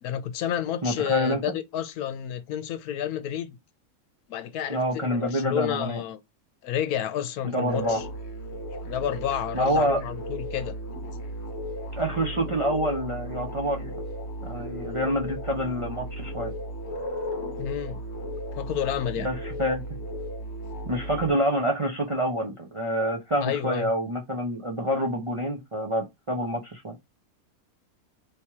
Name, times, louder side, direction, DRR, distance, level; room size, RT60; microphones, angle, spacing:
voice 1, 0.0-3.6 4.3-6.2 6.6-8.1 8.8-10.7 17.6-18.0 18.5-19.3 23.4-23.9, left 10 dB, 80° left, 1.1 m, -30 dB
voice 2, 0.8-1.4 4.7-6.0 7.4-8.0 9.5-10.0 12.0-13.9 14.4-16.5 19.2-19.8 20.9-27.0, equal, 40° right, 0.4 m, -27 dB
sound 1, 7.7-21.3, equal, 50° left, 1.1 m, -35 dB
3.3 x 2.9 x 4.6 m
omnidirectional pair, 1.6 m